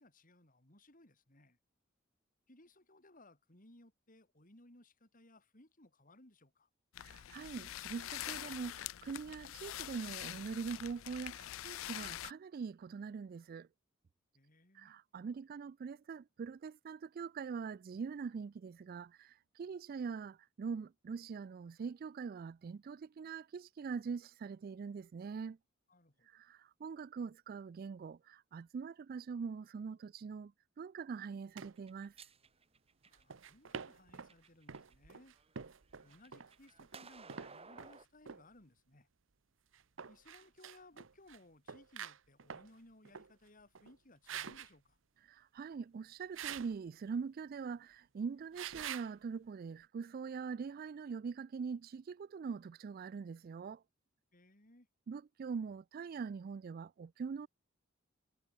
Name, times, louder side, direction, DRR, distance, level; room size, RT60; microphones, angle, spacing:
voice 1, 0.0-1.6 2.5-6.7 14.3-14.9 25.9-26.3 33.1-35.3 36.0-39.1 40.1-45.0 54.3-54.9, left 1 dB, 40° left, 4.3 m, -62 dB
sound 1, 6.9-12.3, left 13 dB, 80° left, 0.4 m, -45 dB
voice 2, 7.0-13.7 14.7-25.6 26.3-30.5 30.8-32.1 45.2-53.8 55.1-57.5, right 5 dB, 45° right, 0.3 m, -43 dB
sound 2, 31.6-31.7 33.1-34.3 34.7-38.0 38.3-38.4 39.7-41.4 41.7-42.7 43.0-43.3 43.7-43.9 44.3-44.7 46.3-46.7 48.5-49.1, right 7 dB, 65° right, 0.8 m, -46 dB
sound 3, 31.8-33.5 34.1-34.9 35.3-38.1, right 4 dB, 30° right, 3.1 m, -57 dB
head